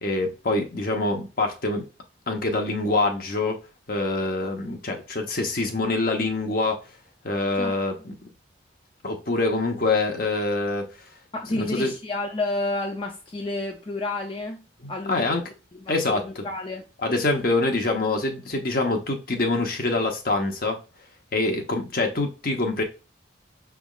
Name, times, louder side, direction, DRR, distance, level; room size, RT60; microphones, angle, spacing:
voice 1, 0.0-1.9 2.3-3.6 3.9-6.8 7.2-8.1 9.0-10.9 11.5-11.9 14.8-15.4 15.9-16.4 17.0-20.8 21.3-22.8, left 2 dB, 50° left, 0.9 m, -25 dB
voice 2, 11.3-15.4 15.7-16.8, left 2 dB, 25° left, 0.5 m, -31 dB
6.2 x 3.4 x 2.4 m
head